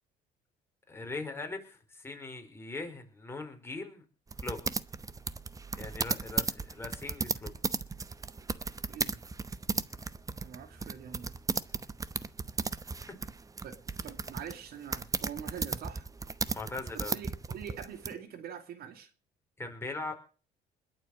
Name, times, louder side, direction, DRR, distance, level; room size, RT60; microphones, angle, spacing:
voice 1, 0.9-4.0 4.4-4.6 5.8-7.5 16.5-17.1 19.6-20.1, left 3 dB, 15° left, 5.1 m, -40 dB
sound 1, 4.3-18.1, right 4 dB, 20° right, 0.9 m, -35 dB
voice 2, 8.8-9.2 10.4-11.3 13.6-16.1 16.9-19.1, right 8 dB, 65° right, 2.5 m, -44 dB
21.0 x 8.0 x 7.4 m
cardioid pair, 110°, 17 cm